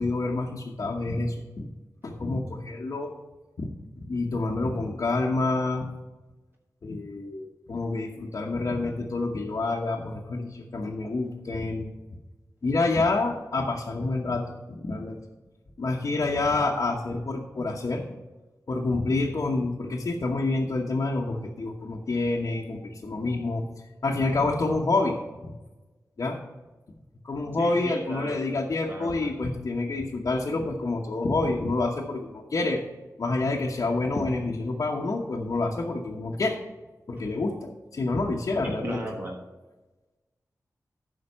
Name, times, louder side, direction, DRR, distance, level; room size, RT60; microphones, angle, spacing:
voice 1, 0.0-1.6 2.0-3.1 3.6-3.7 4.0-5.9 6.8-11.9 12.6-14.4 14.7-15.2 15.8-18.0 18.7-23.6 24.0-25.2 25.4-25.5 26.2-26.4 27.2-32.8 33.2-36.6 37.1-39.0, left 3 dB, 60° left, -2 dB, 1.0 m, -28 dB
voice 2, 27.6-28.4 28.9-29.4 38.8-39.4, right 1 dB, 35° right, 0 dB, 1.2 m, -36 dB
9.8 x 5.7 x 5.6 m, 1.2 s
wide cardioid pair, 80°, 6 cm